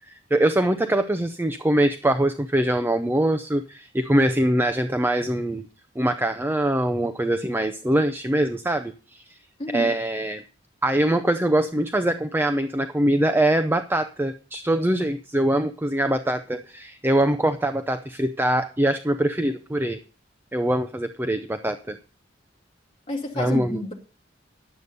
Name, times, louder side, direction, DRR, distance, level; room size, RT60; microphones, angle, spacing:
voice 1, 0.1-5.7 6.0-9.4 9.7-10.4 10.8-20.0 20.5-22.0 23.4-23.8, right 1 dB, 10° right, 0.6 m, -23 dB
voice 2, 9.6-10.0 23.1-23.9, left 1 dB, 30° left, 2.2 m, -29 dB
11.5 x 8.2 x 5.3 m
head